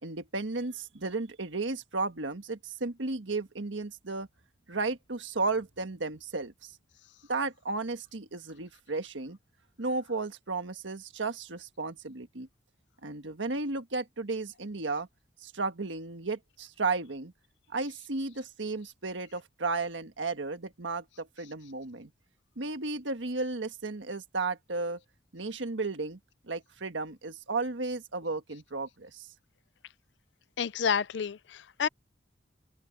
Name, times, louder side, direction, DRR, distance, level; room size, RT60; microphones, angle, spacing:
voice 1, 0.0-4.3 4.7-6.7 7.3-9.4 9.8-12.5 13.0-15.1 15.4-17.3 17.7-22.1 22.6-25.0 25.3-26.2 26.5-29.3, right 3 dB, 90° right, 1.5 m, -34 dB
voice 2, 30.6-31.9, left 7 dB, 70° left, 0.5 m, -29 dB
head